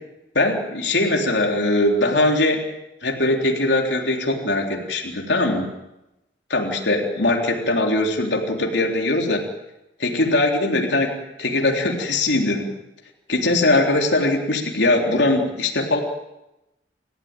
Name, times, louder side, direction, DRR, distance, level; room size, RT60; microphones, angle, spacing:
voice 1, 0.4-2.6 3.0-5.7 6.5-9.4 10.0-11.1 11.4-12.7 13.3-16.0, left 2 dB, 90° left, 1 dB, 3.6 m, -21 dB
28.5 x 14.5 x 9.1 m, 0.93 s
head